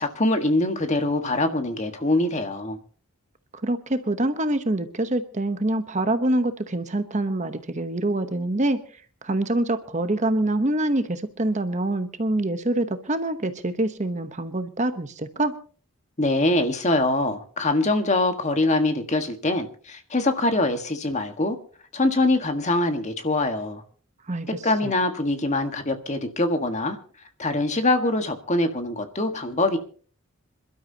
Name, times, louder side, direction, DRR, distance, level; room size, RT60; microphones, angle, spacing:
voice 1, 0.0-2.8 16.2-21.6 21.9-23.8 24.5-27.0 27.4-29.8, left 2 dB, 35° left, 1.6 m, -23 dB
voice 2, 3.6-8.8 9.2-15.5 24.3-24.5 24.8-24.9, right 1 dB, 35° right, 1.0 m, -25 dB
27.0 x 12.5 x 2.9 m
head